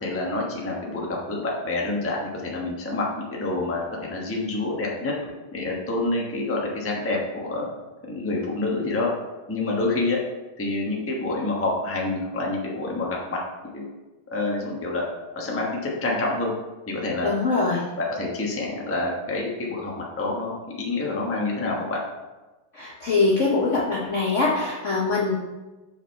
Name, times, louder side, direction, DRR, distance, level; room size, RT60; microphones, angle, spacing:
voice 1, 0.0-5.1 5.5-7.6 8.0-9.1 9.5-10.2 10.6-13.4 13.7-13.9 14.3-15.0 15.3-16.5 16.9-17.3 18.0-22.0, left 2 dB, 10° left, -2 dB, 0.6 m, -27 dB
voice 2, 17.2-17.8 22.7-25.4, left 3 dB, 70° left, -3 dB, 0.7 m, -23 dB
6.5 x 5.1 x 4.5 m, 1.2 s
omnidirectional pair, 2.4 m